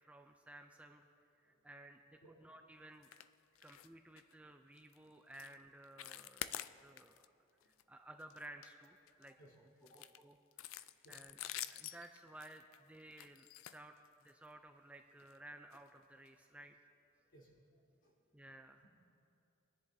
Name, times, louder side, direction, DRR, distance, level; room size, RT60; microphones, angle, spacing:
voice 1, 0.0-1.1 1.4-3.1 3.6-7.3 7.6-9.4 9.9-11.4 11.7-14.0 14.2-16.8 18.3-18.8, right 1 dB, 5° right, 5 dB, 0.4 m, -56 dB
voice 2, 2.2-2.3 9.4-9.6 9.8-10.0 11.0-11.2 17.3-17.5 18.0-18.1, right 1 dB, 55° left, -5 dB, 3.6 m, -61 dB
sound 1, 3.0-3.3 3.6-3.9 4.2-4.3 4.8-5.0 5.3-5.6 5.8-7.3 7.6-7.8 8.2-9.3 9.9-14.5 15.2-15.4 15.7-15.8 16.3-16.4, left 12 dB, 80° left, 0.4 m, -48 dB
23.5 x 10.5 x 2.7 m, 2.6 s
head